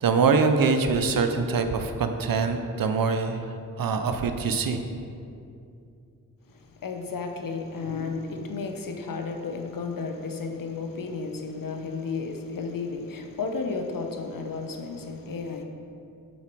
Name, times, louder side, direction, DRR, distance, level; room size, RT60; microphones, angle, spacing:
voice 1, 0.0-4.8, right 4 dB, 70° right, 7 dB, 0.7 m, -24 dB
voice 2, 6.5-15.6, left 4 dB, 65° left, 4 dB, 0.9 m, -33 dB
7.4 x 5.8 x 4.6 m, 2.5 s
cardioid pair, 60°, 35 cm